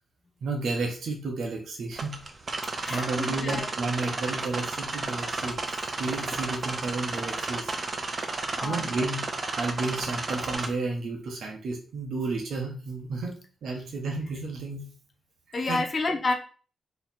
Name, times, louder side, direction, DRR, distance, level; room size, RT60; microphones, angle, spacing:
voice 1, 0.4-2.1 2.9-5.6 6.0-7.7 8.6-9.2 9.6-14.8 15.5-15.8, right 3 dB, 65° right, 1 dB, 1.0 m, -32 dB
sound 1, 1.9-10.7, right 3 dB, 30° right, 0.6 m, -32 dB
voice 2, 2.8-3.6 8.6-8.9 15.5-16.3, left 3 dB, 30° left, 1 dB, 0.6 m, -29 dB
4.1 x 3.0 x 4.1 m, 0.40 s
wide cardioid pair, 175°, 0 cm